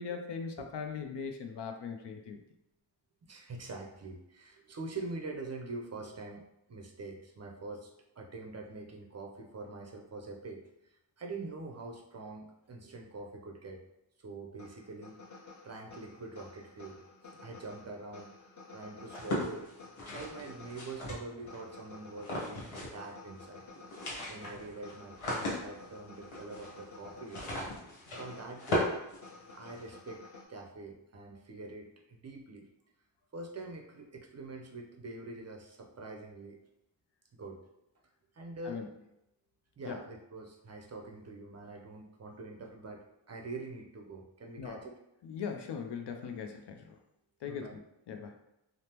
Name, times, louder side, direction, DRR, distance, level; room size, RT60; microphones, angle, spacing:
voice 1, 0.0-2.4 38.6-38.9 39.9-40.0 44.6-44.8 45.2-47.0 47.4-47.8 48.1-48.3, left 6 dB, 60° left, 5 dB, 0.5 m, -40 dB
voice 2, 3.2-10.6 11.2-13.8 14.2-15.2 15.6-19.7 20.1-23.6 24.3-27.7 28.1-28.9 29.5-30.2 30.5-32.7 33.3-36.6 37.3-37.7 38.3-38.8 39.8-44.9 47.4-47.8, right 3 dB, 35° right, 1 dB, 0.5 m, -45 dB
sound 1, 14.6-30.5, left 3 dB, 40° left, 0.9 m, -53 dB
sound 2, 19.1-21.6 22.2-23.1 23.3-23.4 23.7-29.9, left 1 dB, 80° left, 1.1 m, -37 dB
3.3 x 2.1 x 2.9 m, 0.85 s
cardioid pair, 75°, 48 cm